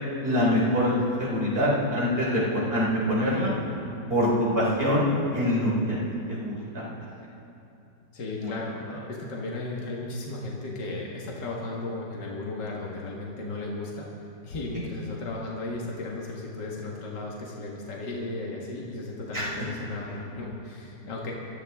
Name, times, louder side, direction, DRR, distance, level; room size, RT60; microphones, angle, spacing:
voice 1, 0.2-3.5 4.1-5.0 5.3-6.0 6.3-6.8 8.4-8.5 19.3-19.5 20.1-20.2, equal, 30° right, -6 dB, 4.4 m, -24 dB
voice 2, 8.1-8.7 9.1-14.1 14.4-21.3, left 2 dB, 70° left, -3 dB, 2.4 m, -35 dB
24.5 x 14.5 x 3.6 m, 2.8 s
omnidirectional pair, 1.9 m